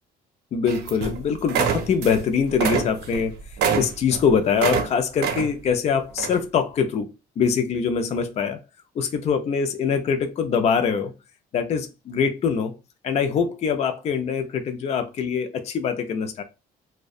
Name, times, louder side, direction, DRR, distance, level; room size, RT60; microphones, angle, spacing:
voice 1, 0.5-3.4 3.7-7.1 7.4-8.6 9.0-11.1 11.5-12.7 13.0-16.4, left 6 dB, 40° left, 0.4 m, -23 dB
sound 1, 0.7-1.2 1.5-2.2 2.5-4.9 5.2-5.7 6.2-6.4, right 7 dB, 75° right, 0.5 m, -25 dB
2.5 x 2.1 x 2.4 m
cardioid pair, 110°, 17 cm